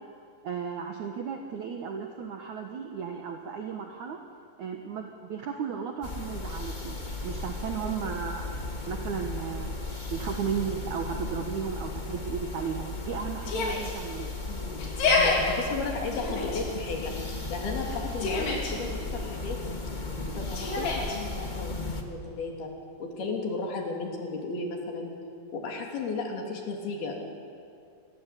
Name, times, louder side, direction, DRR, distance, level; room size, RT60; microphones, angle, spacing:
voice 1, 0.4-4.2 4.6-8.5 8.9-9.8 10.0-14.3, right 7 dB, 60° right, 3 dB, 2.4 m, -35 dB
sound 1, 6.0-22.0, left 3 dB, 35° left, 0.7 m, -36 dB
Yell, 13.4-13.9 14.8-15.4 16.1-16.6 17.8-18.7 20.5-21.2, left 3 dB, 90° left, 5.9 m, -27 dB
voice 2, 14.5-19.6 20.3-22.7 23.0-25.1 25.5-27.2, left 3 dB, 70° left, 1 dB, 5.0 m, -35 dB
27.5 x 21.0 x 8.5 m, 2.4 s
omnidirectional pair, 4.6 m